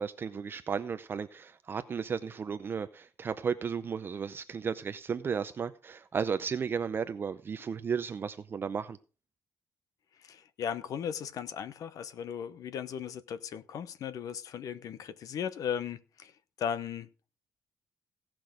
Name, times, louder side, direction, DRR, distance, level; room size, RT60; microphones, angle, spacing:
voice 1, 0.0-9.0, right 6 dB, 35° right, 0.5 m, -34 dB
voice 2, 10.2-16.3 16.6-17.1, left 8 dB, 60° left, 0.8 m, -37 dB
17.0 x 6.1 x 4.9 m
cardioid pair, 150°, 7 cm